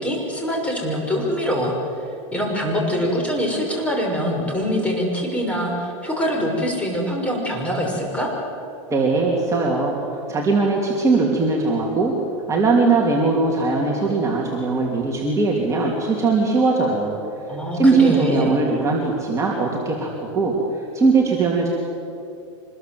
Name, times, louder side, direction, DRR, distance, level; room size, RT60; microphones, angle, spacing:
voice 1, 0.0-1.7 2.3-8.3 17.5-18.5, equal, 5° left, -1 dB, 6.0 m, -24 dB
voice 2, 8.9-10.0 10.3-12.1 12.5-17.2 17.7-21.7, right 3 dB, 15° right, -2 dB, 3.1 m, -20 dB
25.5 x 21.0 x 7.9 m, 2.7 s
supercardioid pair, 130°, 17 cm